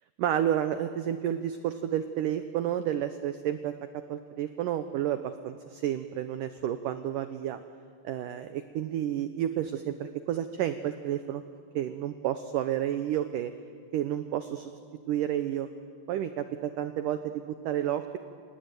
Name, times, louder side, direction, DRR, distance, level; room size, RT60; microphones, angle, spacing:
voice 1, 0.2-3.7 4.1-7.6 8.0-11.4 11.8-13.5 13.9-14.7 15.1-15.7 16.1-18.2, right 11 dB, 90° right, 10 dB, 1.8 m, -30 dB
27.5 x 19.0 x 9.3 m, 2.2 s
omnidirectional pair, 4.9 m